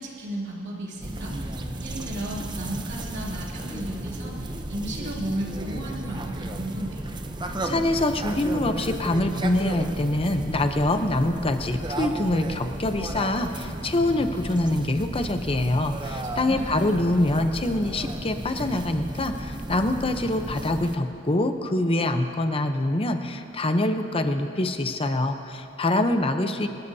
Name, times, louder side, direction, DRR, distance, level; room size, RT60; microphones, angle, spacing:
voice 1, 0.0-7.0 16.2-16.8, right 1 dB, 60° right, -5 dB, 3.0 m, -34 dB
sound 1, 1.0-21.0, right 1 dB, 20° right, 0.7 m, -34 dB
voice 2, 7.6-26.7, left 1 dB, 25° left, 7 dB, 0.7 m, -25 dB
26.5 x 14.0 x 2.8 m, 2.7 s
head